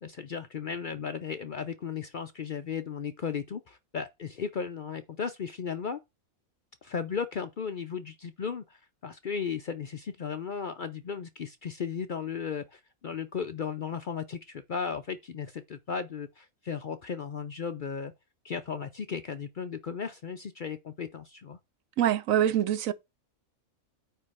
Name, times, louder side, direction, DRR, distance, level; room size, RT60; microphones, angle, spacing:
voice 1, 0.0-6.0 6.8-18.1 18.4-21.6, left 6 dB, 55° left, 0.5 m, -35 dB
voice 2, 22.0-22.9, right 11 dB, 75° right, 1.1 m, -24 dB
9.1 x 3.3 x 6.4 m
omnidirectional pair, 1.5 m